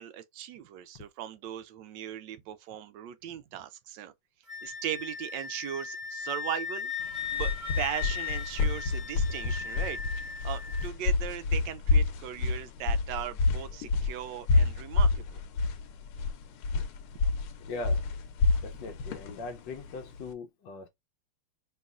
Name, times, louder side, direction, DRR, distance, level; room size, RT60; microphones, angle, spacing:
voice 1, 0.0-4.1 4.6-6.9 7.3-15.4, right 11 dB, 75° right, 1.0 m, -38 dB
Wind instrument woodwind instrument, 4.5-10.9, left 7 dB, 40° right, 1.0 m, -37 dB
sound 1, 7.1-20.3, left 3 dB, 85° left, 1.6 m, -28 dB
voice 2, 17.7-18.1 18.6-20.9, left 3 dB, 70° left, 1.2 m, -40 dB
5.4 x 3.0 x 2.4 m
omnidirectional pair, 2.4 m